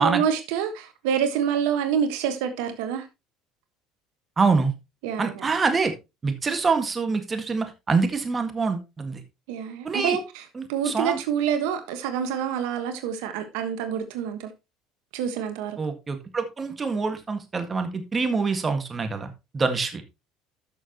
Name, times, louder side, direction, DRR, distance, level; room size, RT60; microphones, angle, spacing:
voice 1, 0.0-3.0 5.0-5.5 9.5-10.4 10.7-14.5 15.1-15.8, right 8 dB, 80° right, 1.4 m, -27 dB
voice 2, 4.4-4.7 5.2-5.9 6.2-9.2 9.8-10.2 10.6-11.2 15.8-20.0, right 4 dB, 25° right, 1.7 m, -25 dB
12.5 x 6.5 x 3.0 m
supercardioid pair, 100°, 0 cm